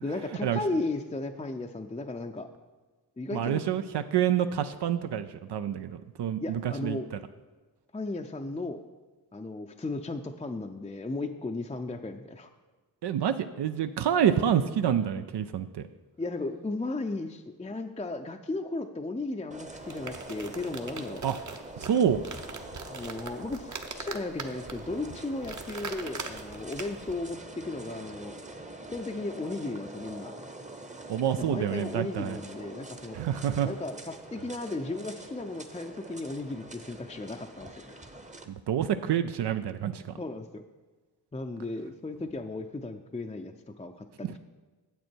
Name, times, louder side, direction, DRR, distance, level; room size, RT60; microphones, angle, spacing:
voice 1, 0.0-2.5 3.2-3.6 6.4-7.1 7.9-8.8 9.3-12.5 16.2-21.2 22.9-28.4 28.9-30.3 31.4-33.2 33.6-38.0 40.2-40.6 41.3-44.4, left 2 dB, 15° left, 4 dB, 0.5 m, -35 dB
voice 2, 3.3-7.2 13.0-15.8 21.2-21.4 21.8-22.2 31.1-32.4 33.1-33.7 38.5-40.0 44.2-44.3, right 9 dB, 75° right, 10 dB, 0.5 m, -27 dB
sound 1, 19.5-38.4, right 1 dB, 20° right, 0.8 m, -45 dB
sound 2, 19.7-27.1, right 4 dB, 45° right, 0.9 m, -42 dB
9.4 x 7.6 x 4.5 m, 1.3 s
cardioid pair, 65°, 41 cm